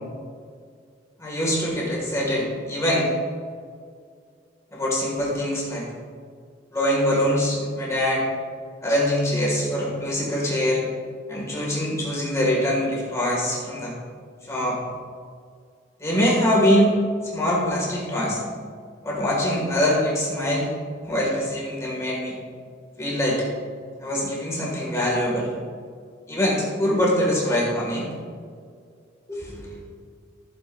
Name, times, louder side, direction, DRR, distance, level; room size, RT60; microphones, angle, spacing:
voice 1, 1.2-3.1 4.7-5.9 6.7-8.2 8.8-10.8 11.3-14.0 14.5-14.8 16.0-16.9 17.2-18.4 19.0-20.7 21.0-22.4 23.0-23.4 24.0-25.5 26.3-28.1 29.3-29.8, equal, 15° left, -5 dB, 2.3 m, -23 dB
15.5 x 6.9 x 2.7 m, 2.1 s
head